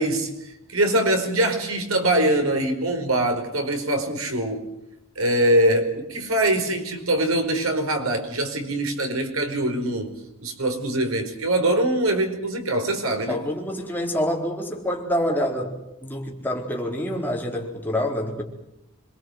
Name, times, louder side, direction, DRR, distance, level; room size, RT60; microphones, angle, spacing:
voice 1, 0.0-4.6 5.1-10.1 10.4-13.4, right 1 dB, 90° right, 5 dB, 5.0 m, -23 dB
voice 2, 13.3-18.4, equal, 10° left, 0 dB, 4.4 m, -27 dB
26.5 x 23.0 x 7.9 m, 0.85 s
head